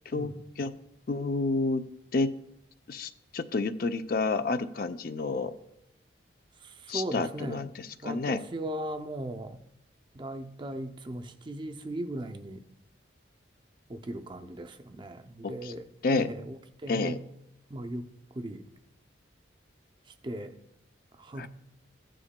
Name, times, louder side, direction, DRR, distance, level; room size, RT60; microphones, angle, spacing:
voice 1, 0.1-0.7 1.1-1.8 2.1-2.3 2.9-5.5 6.9-8.4 15.4-15.7 16.0-16.3 16.9-17.2 21.4-21.5, left 3 dB, 50° left, 10 dB, 0.4 m, -30 dB
voice 2, 6.6-7.6 8.0-9.6 10.1-12.6 13.9-16.6 16.8-17.2 17.7-18.1 18.4-18.7 20.2-20.5 21.2-21.5, right 1 dB, 25° right, 6 dB, 0.5 m, -37 dB
15.0 x 9.9 x 2.2 m, 0.83 s
head